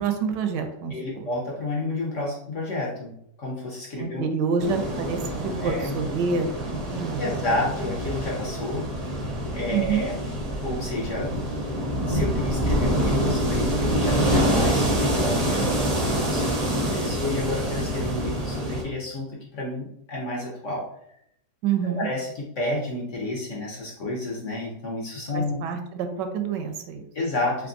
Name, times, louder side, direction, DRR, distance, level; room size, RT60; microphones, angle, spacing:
voice 1, 0.0-1.3 4.0-7.4 9.7-10.0 21.6-22.1 25.3-27.0, right 6 dB, 80° right, 6 dB, 1.2 m, -27 dB
voice 2, 0.9-3.1 3.4-4.2 4.6-4.7 5.6-6.0 7.2-8.9 9.5-11.3 12.1-20.9 21.8-25.7 27.1-27.7, left 2 dB, 55° left, -2 dB, 0.9 m, -30 dB
sound 1, 4.6-18.8, equal, 45° right, 0.5 m, -26 dB
3.5 x 3.4 x 2.5 m, 0.73 s
omnidirectional pair, 1.9 m